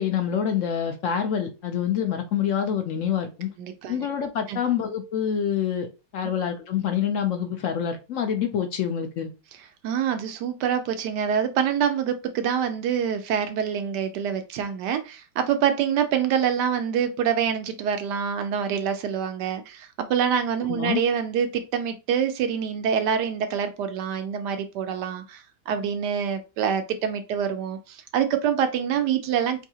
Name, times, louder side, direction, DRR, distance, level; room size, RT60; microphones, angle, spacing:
voice 1, 0.0-3.5 3.9-9.3 20.7-21.0, left 8 dB, 70° left, 0.7 m, -26 dB
voice 2, 3.6-4.0 4.5-4.6 9.8-29.7, right 8 dB, 80° right, 1.2 m, -26 dB
4.8 x 2.7 x 2.7 m
omnidirectional pair, 1.8 m